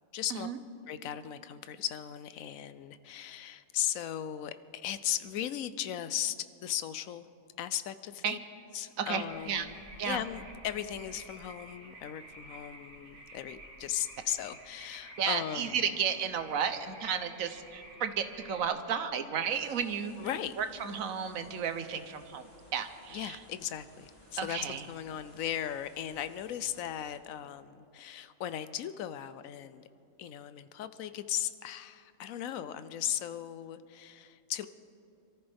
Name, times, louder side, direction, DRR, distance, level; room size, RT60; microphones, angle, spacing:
voice 1, 0.1-0.5 0.9-7.3 7.6-8.4 8.7-9.8 10.0-15.8 20.2-20.5 23.1-24.6 24.9-29.8 30.2-34.7, left 10 dB, 75° left, 13 dB, 1.0 m, -37 dB
voice 2, 9.0-9.7 10.0-10.2 15.2-20.1 20.6-23.4 24.4-24.9, right 7 dB, 75° right, 9 dB, 1.3 m, -33 dB
sound 1, 9.1-18.7, right 1 dB, 40° right, 1.9 m, -51 dB
sound 2, 19.5-27.1, equal, 30° left, 3.3 m, -59 dB
26.5 x 14.0 x 3.5 m, 2.8 s
omnidirectional pair, 1.4 m